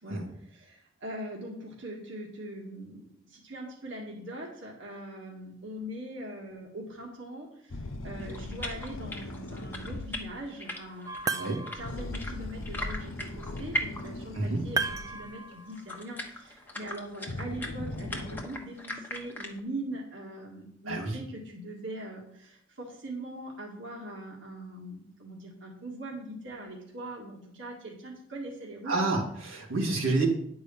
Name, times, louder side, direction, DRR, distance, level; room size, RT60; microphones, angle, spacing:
voice 1, 0.0-11.4 11.7-28.9, right 1 dB, 65° right, -2 dB, 1.9 m, -41 dB
sound 1, 7.7-10.4 11.7-15.3 16.8-16.9 17.3-18.4, left 2 dB, 80° left, 0.8 m, -39 dB
sound 2, 8.2-14.5 14.8-14.9 15.5-19.6, equal, 10° left, 1.0 m, -40 dB
sound 3, 11.1-12.0 14.8-15.9, right 4 dB, 15° right, 0.4 m, -33 dB
voice 2, 20.9-21.2 28.9-30.3, right 3 dB, 85° right, -1 dB, 2.2 m, -29 dB
10.5 x 4.8 x 7.1 m, 0.69 s
head